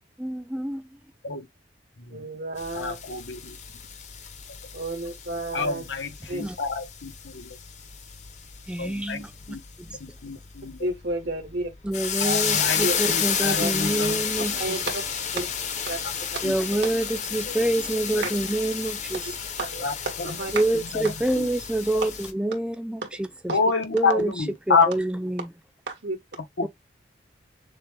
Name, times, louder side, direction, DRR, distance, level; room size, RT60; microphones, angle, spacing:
voice 1, 0.2-0.8 6.4-6.6 8.7-10.0 11.8-14.5 16.4-19.2 20.5-23.3 23.9-24.3 24.7-25.5 26.6-26.7, right 1 dB, 5° right, 0.3 m, -27 dB
voice 2, 2.1-3.0 4.7-5.8 6.3-6.5 10.8-11.7 12.8-13.0 13.6-13.7 14.6-15.0 15.3-15.5 15.9-16.0 19.6-19.9 20.2-20.5 23.0-23.1 23.5-23.6 25.9-26.2, right 2 dB, 75° right, 1.9 m, -31 dB
sound 1, 2.6-22.3, left 7 dB, 40° left, 0.7 m, -31 dB
voice 3, 2.7-3.6 5.5-7.6 8.8-9.6 10.0-10.8 12.2-14.6 16.4-16.6 17.5-17.6 18.1-18.3 19.8-20.3 20.7-21.5 23.5-24.9 26.6-26.7, left 4 dB, 90° left, 1.0 m, -28 dB
6.6 x 2.3 x 3.6 m
head